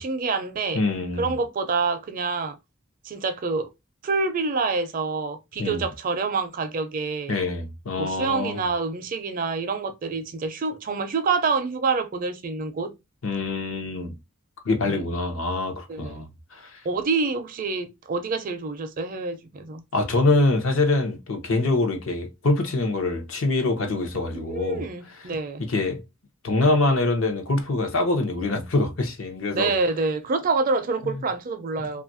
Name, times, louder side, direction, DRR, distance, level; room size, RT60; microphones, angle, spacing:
voice 1, 0.0-0.8 1.2-2.6 3.0-3.7 4.0-7.3 8.0-12.9 14.8-15.0 15.9-16.3 16.8-19.8 24.3-25.6 29.5-32.0, right 4 dB, 40° right, 0.4 m, -27 dB
voice 2, 0.7-1.3 5.6-5.8 7.3-8.6 13.2-14.1 14.6-16.3 16.5-16.8 19.9-24.8 25.7-26.0 26.4-29.7, left 2 dB, 70° left, 0.7 m, -24 dB
3.0 x 2.4 x 2.5 m
head